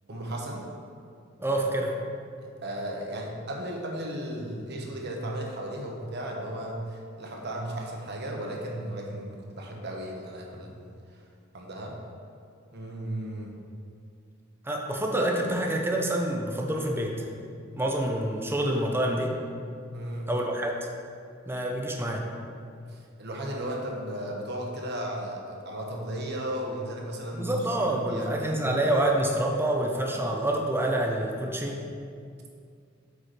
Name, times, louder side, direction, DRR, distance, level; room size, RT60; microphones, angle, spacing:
voice 1, 0.1-0.6 2.4-10.8 11.5-12.0 12.7-13.5 19.9-20.3 22.9-28.7, right 1 dB, 55° right, 0 dB, 1.2 m, -35 dB
voice 2, 1.4-2.0 14.6-17.3 17.7-19.4 20.3-20.9 21.5-22.3 27.3-31.8, right 1 dB, 10° right, 1 dB, 0.8 m, -27 dB
8.3 x 4.8 x 5.2 m, 2.3 s
head